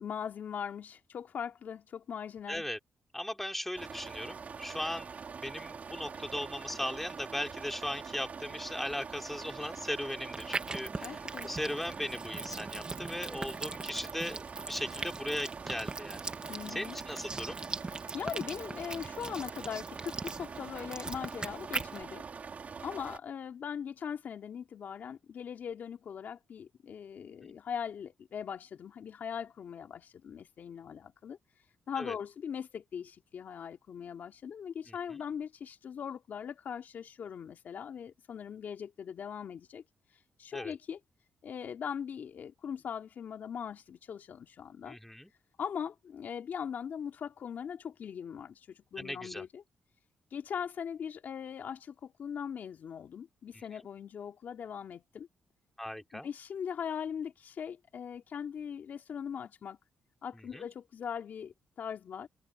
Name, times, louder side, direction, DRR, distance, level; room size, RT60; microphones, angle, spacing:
voice 1, 0.0-2.7 11.0-11.5 16.5-17.0 18.1-22.2 22.8-31.4 31.9-39.8 40.4-41.0 41.4-45.0 45.6-49.6 50.3-55.3 56.1-59.8 60.2-62.3, left 7 dB, 65° left, 2.8 m, -40 dB
voice 2, 2.5-2.8 3.1-16.3 16.7-17.6 27.4-27.5 32.0-32.1 34.9-35.2 40.5-40.7 44.9-45.3 48.9-49.4 53.5-53.6 55.8-56.3 60.3-60.7, left 1 dB, 5° left, 3.4 m, -38 dB
sound 1, 3.8-23.2, right 5 dB, 50° right, 4.0 m, -44 dB
sound 2, 10.3-22.0, right 3 dB, 30° right, 2.0 m, -41 dB
cardioid pair, 75°, 3 cm